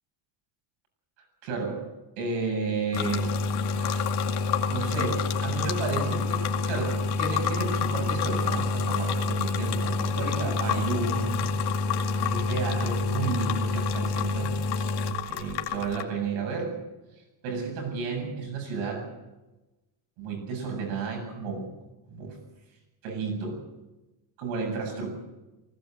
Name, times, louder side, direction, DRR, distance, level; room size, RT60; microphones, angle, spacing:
voice 1, 1.4-1.8 2.2-3.4 3.7-4.1 4.7-11.5 12.2-14.9 15.3-16.7 17.4-19.1 20.2-21.7 22.1-22.3 23.0-23.6 24.4-25.1, right 4 dB, 90° right, 3 dB, 7.8 m, -32 dB
sound 1, 2.9-16.0, left 4 dB, 60° left, 2.4 m, -27 dB
19.5 x 17.5 x 7.8 m, 1.1 s
cardioid pair, 150°, 45 cm